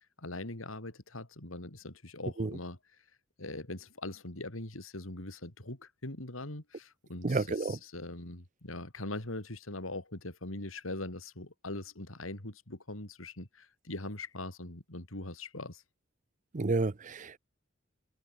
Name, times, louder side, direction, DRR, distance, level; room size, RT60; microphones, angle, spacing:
voice 1, 0.2-2.8 3.4-15.8, left 2 dB, 90° left, 3.6 m, -41 dB
voice 2, 7.2-7.8 16.5-17.4, right 3 dB, 40° right, 0.6 m, -30 dB
head